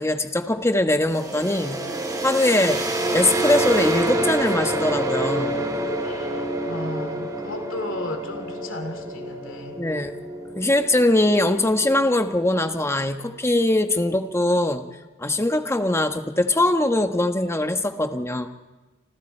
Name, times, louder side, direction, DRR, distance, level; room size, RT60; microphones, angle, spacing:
voice 1, 0.0-1.8 2.2-2.8 3.1-5.6 9.8-10.2 10.5-14.9 15.2-18.5, left 1 dB, 15° left, 7 dB, 1.3 m, -21 dB
sound 1, 1.1-12.8, right 1 dB, 20° right, 3.5 m, -28 dB
voice 2, 6.0-9.8, left 1 dB, 65° left, 6 dB, 2.9 m, -34 dB
29.5 x 26.0 x 4.5 m, 1.2 s
head